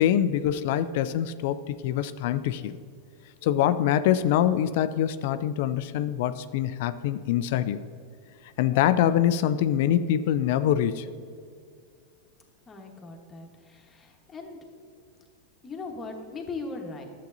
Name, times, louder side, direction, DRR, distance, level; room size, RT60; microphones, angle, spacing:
voice 1, 0.0-2.8 3.4-7.8 8.6-11.1, left 10 dB, 65° left, 13 dB, 0.3 m, -24 dB
voice 2, 12.6-14.6 15.6-17.1, left 3 dB, 25° left, 2 dB, 1.2 m, -39 dB
10.5 x 7.6 x 2.7 m, 2.2 s
hypercardioid pair, 105°, 0 cm